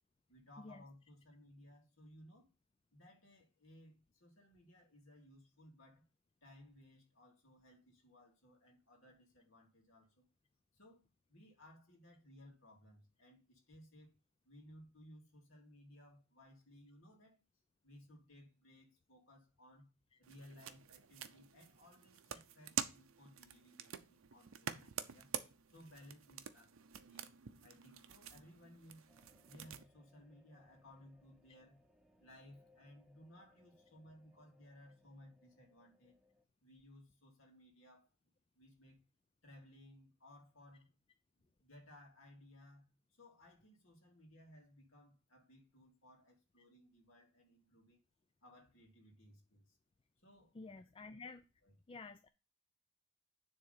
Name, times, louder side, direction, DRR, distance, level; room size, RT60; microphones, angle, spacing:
voice 1, 0.3-2.5 2.9-6.1 6.4-10.2 10.7-14.1 14.4-17.4 17.8-19.9 20.2-25.3 25.7-26.7 27.1-27.3 27.6-29.1 29.4-31.8 32.2-36.2 36.6-38.1 38.6-39.0 39.4-41.0 41.4-48.0 48.4-49.8 50.2-50.6 51.1-51.2 51.6-51.7, left 1 dB, 70° left, 2.8 m, -61 dB
sound 1, 20.2-29.8, right 8 dB, 80° right, 0.7 m, -47 dB
sound 2, 29.1-36.4, left 1 dB, 5° right, 0.9 m, -71 dB
voice 2, 50.5-51.4 51.9-52.3, left 3 dB, 25° left, 0.4 m, -51 dB
9.8 x 3.7 x 5.3 m
head